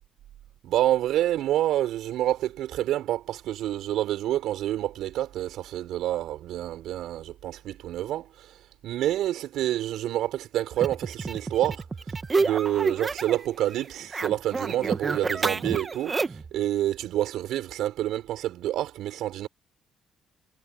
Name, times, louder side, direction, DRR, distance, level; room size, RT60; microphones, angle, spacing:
voice 1, 0.6-8.5 8.8-11.8 12.4-19.5, right 13 dB, 85° right, 5.5 m, -28 dB
sound 1, 10.8-13.5 13.7-16.5, right 4 dB, 30° right, 1.7 m, -29 dB
cardioid pair, 90°, 0 cm